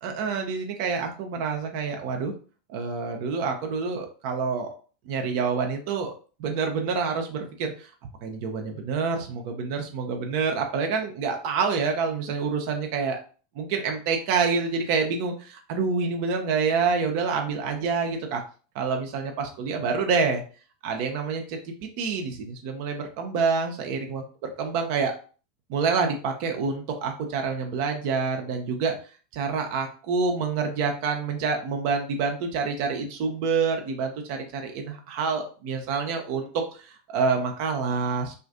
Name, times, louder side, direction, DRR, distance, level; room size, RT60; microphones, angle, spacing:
voice 1, 0.0-2.3 2.7-4.7 5.1-6.1 6.4-7.9 8.2-13.2 13.6-18.4 18.7-20.4 20.8-24.2 24.6-25.1 25.7-28.9 29.3-38.3, right 5 dB, 55° right, 4 dB, 0.5 m, -27 dB
2.5 x 2.4 x 2.4 m, 0.38 s
figure-of-eight pair, 85°, 0 cm